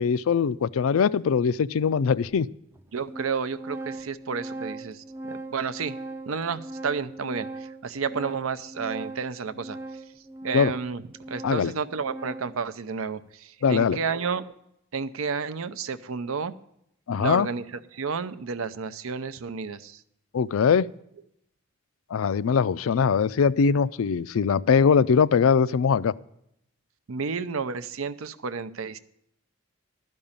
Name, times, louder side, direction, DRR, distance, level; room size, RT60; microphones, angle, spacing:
voice 1, 0.0-2.5 10.5-10.7 11.4-11.7 13.6-14.0 17.1-17.5 20.3-20.9 22.1-26.1, left 6 dB, 85° left, 18 dB, 0.4 m, -21 dB
Organ, 1.4-1.5 2.3-2.4 2.7-12.6, right 2 dB, 10° right, 0.4 m, -39 dB
voice 2, 2.9-6.0 6.3-9.8 10.4-11.0 11.3-14.5 14.9-16.5 17.2-17.6 17.9-20.0 27.1-29.0, right 5 dB, 90° right, 13 dB, 0.6 m, -31 dB
12.0 x 5.4 x 8.7 m, 0.78 s
head